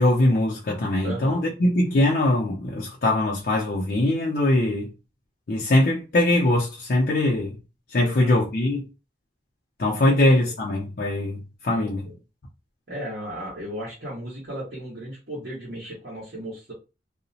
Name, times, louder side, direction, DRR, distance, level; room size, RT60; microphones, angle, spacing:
voice 1, 0.0-4.9 5.5-7.6 7.9-8.9 9.8-12.0, left 1 dB, 55° left, 0.5 m, -22 dB
voice 2, 1.0-1.4 8.0-8.4 10.1-10.5 11.7-12.1 12.9-16.7, right 1 dB, 60° right, 1.3 m, -36 dB
2.8 x 2.0 x 2.7 m
head